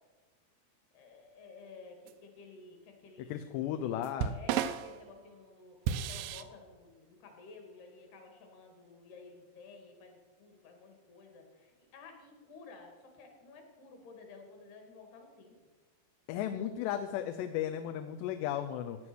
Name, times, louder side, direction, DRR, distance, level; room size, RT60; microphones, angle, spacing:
voice 1, 0.9-3.3 4.3-5.8 6.0-15.5, left 4 dB, 70° left, 3 dB, 4.2 m, -53 dB
sound 1, 2.1-2.2 4.0-5.0 5.9-6.4, right 9 dB, 80° right, 2.6 m, -33 dB
voice 2, 3.3-4.3 16.3-19.0, left 10 dB, 85° left, 7 dB, 2.9 m, -35 dB
17.0 x 9.6 x 6.2 m, 1.3 s
omnidirectional pair, 4.9 m